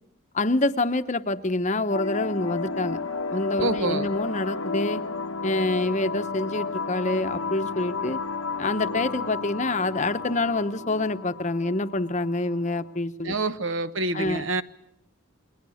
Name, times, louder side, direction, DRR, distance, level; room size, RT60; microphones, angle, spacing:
voice 1, 0.3-3.0 3.3-5.0 5.4-8.2 8.6-13.4 14.1-14.6, left 2 dB, 35° left, 0.9 m, -26 dB
sound 1, 1.9-12.9, left 4 dB, 75° left, 1.0 m, -32 dB
voice 2, 3.6-4.1 13.2-14.6, right 2 dB, 65° right, 1.1 m, -27 dB
29.5 x 22.0 x 6.3 m
head